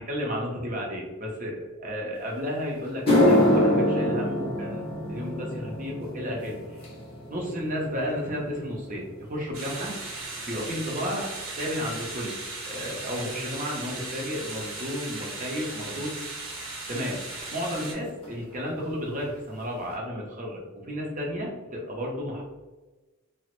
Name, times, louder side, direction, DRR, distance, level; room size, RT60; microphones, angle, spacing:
voice 1, 0.0-4.8 5.1-6.8 7.3-10.0 10.5-12.4 12.6-16.2 16.9-17.2 17.5-22.4, equal, 35° right, -1 dB, 0.6 m, -32 dB
sound 1, 2.3-2.4 2.9-11.4 11.7-12.1 12.8-12.9 15.7-15.8 17.4-17.5 17.7-18.0 18.2-18.8 19.2-19.3 19.8-19.9, left 1 dB, 25° left, 0.7 m, -27 dB
sound 2, 9.5-17.9, right 3 dB, 70° right, 0.9 m, -37 dB
3.0 x 2.0 x 2.9 m, 1.2 s
head